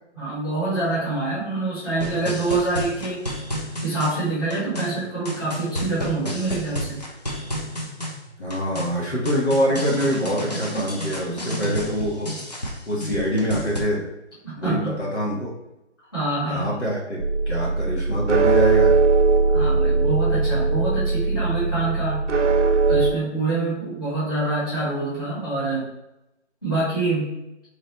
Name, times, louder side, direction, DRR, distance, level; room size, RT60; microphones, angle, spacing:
voice 1, 0.1-3.2 3.8-7.0 14.4-15.0 16.1-16.7 19.5-22.2 22.8-25.9 26.6-27.4, right 2 dB, 20° left, -10 dB, 1.3 m, -26 dB
sound 1, 2.0-13.8, equal, 35° left, 0.5 m, -31 dB
voice 2, 8.4-12.3 12.9-14.0 14.6-15.5 16.4-17.2 17.5-18.9, equal, 65° left, -4 dB, 1.5 m, -24 dB
sound 2, 17.2-23.1, right 3 dB, 85° right, 0.6 m, -20 dB
3.2 x 2.6 x 3.8 m, 0.87 s
figure-of-eight pair, 170°, 35 cm